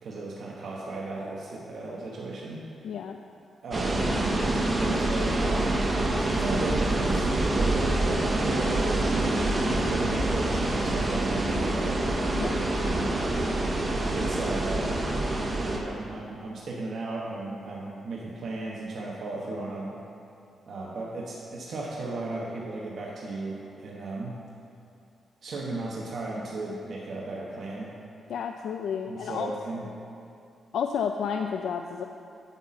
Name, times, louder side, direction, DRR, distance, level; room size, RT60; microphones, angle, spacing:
voice 1, 0.0-2.8 3.6-12.4 12.9-13.3 14.1-14.8 15.6-19.9 20.7-24.4 25.4-27.9 29.1-29.8, right 2 dB, 60° right, -4 dB, 1.0 m, -35 dB
voice 2, 2.8-3.2 12.3-12.8 28.3-29.5 30.7-32.0, left 7 dB, 85° left, 4 dB, 0.3 m, -31 dB
sound 1, 3.7-15.8, right 2 dB, 30° right, 0.8 m, -26 dB
9.0 x 4.2 x 7.3 m, 2.6 s
wide cardioid pair, 135°, 0 cm